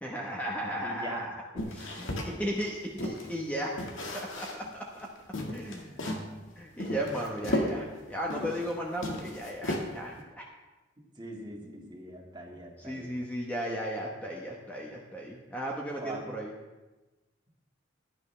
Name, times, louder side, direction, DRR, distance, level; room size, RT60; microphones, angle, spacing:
voice 1, 0.0-1.4 1.7-3.8 4.1-5.1 5.5-6.1 6.6-10.4 12.8-16.5, equal, 10° left, -2 dB, 1.1 m, -35 dB
voice 2, 0.8-1.3 1.5-1.7 10.1-10.3 11.2-13.1 16.0-16.2, right 1 dB, 25° right, -1 dB, 2.0 m, -42 dB
sound 1, 1.6-3.3 3.8-4.7 5.0-5.1 5.3-6.3 6.8-8.7 9.0-10.2, left 1 dB, 80° left, 1.8 m, -34 dB
16.5 x 11.0 x 3.3 m, 1.1 s
head